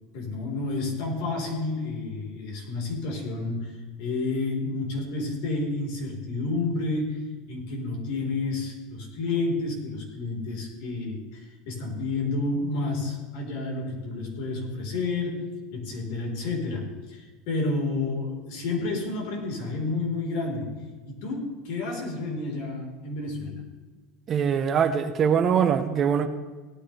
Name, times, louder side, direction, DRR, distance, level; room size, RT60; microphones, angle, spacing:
voice 1, 0.1-23.6, left 3 dB, 70° left, 0 dB, 4.3 m, -30 dB
voice 2, 24.3-26.3, right 7 dB, 35° right, 8 dB, 1.0 m, -22 dB
18.0 x 10.0 x 3.4 m, 1.4 s
supercardioid pair, 125°, 0 cm